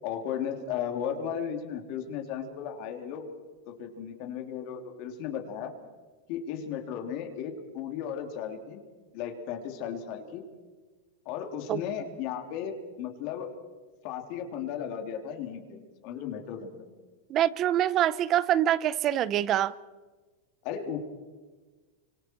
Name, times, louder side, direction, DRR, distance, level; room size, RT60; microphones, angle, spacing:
voice 1, 0.0-3.3 3.7-5.7 6.3-8.8 9.1-10.4 11.2-13.5 14.0-16.9 20.6-21.0, left 8 dB, 45° left, 4 dB, 3.2 m, -35 dB
voice 2, 17.3-19.7, right 11 dB, 30° right, 19 dB, 0.7 m, -25 dB
29.5 x 25.5 x 4.7 m, 1.3 s
supercardioid pair, 160°, 0 cm